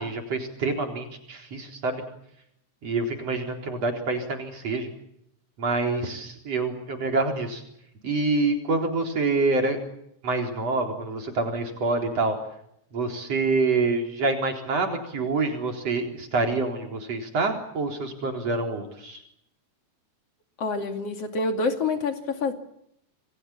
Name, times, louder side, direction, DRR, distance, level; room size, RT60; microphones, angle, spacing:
voice 1, 0.0-2.0 2.8-4.9 5.6-7.6 8.0-9.8 10.2-12.4 12.9-19.2, right 3 dB, 55° right, 3 dB, 5.1 m, -26 dB
voice 2, 20.6-22.5, left 3 dB, 55° left, 5 dB, 3.5 m, -27 dB
28.0 x 22.0 x 7.3 m, 0.76 s
omnidirectional pair, 3.4 m